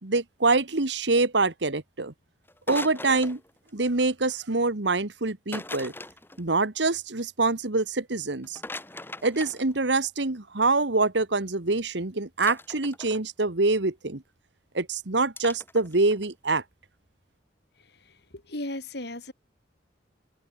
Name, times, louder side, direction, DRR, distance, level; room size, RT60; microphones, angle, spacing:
voice 1, 0.0-2.1 2.7-3.4 3.7-5.9 6.4-8.6 9.2-14.2 14.7-16.6, right 3 dB, 70° right, 1.6 m, -25 dB
sound 1, 2.5-3.7 5.5-6.4 8.4-10.0 12.4-13.2 15.4-16.3, left 2 dB, 10° left, 7.7 m, -40 dB
voice 2, 17.8-19.3, left 1 dB, 60° left, 4.2 m, -37 dB
head